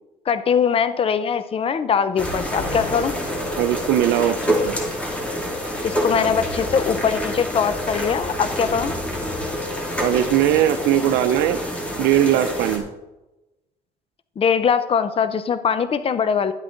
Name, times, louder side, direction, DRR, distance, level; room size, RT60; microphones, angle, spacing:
voice 1, 0.3-3.1 5.8-8.9 14.4-16.5, left 7 dB, 35° left, 12 dB, 0.7 m, -21 dB
sound 1, 2.2-12.8, equal, 5° left, 2.4 m, -27 dB
sound 2, 2.6-4.4, left 2 dB, 75° left, 2.0 m, -37 dB
voice 2, 3.6-4.7 10.0-11.6 12.0-12.8, right 11 dB, 85° right, 9 dB, 0.6 m, -19 dB
11.5 x 7.9 x 3.9 m, 1.0 s
cardioid pair, 110°, 17 cm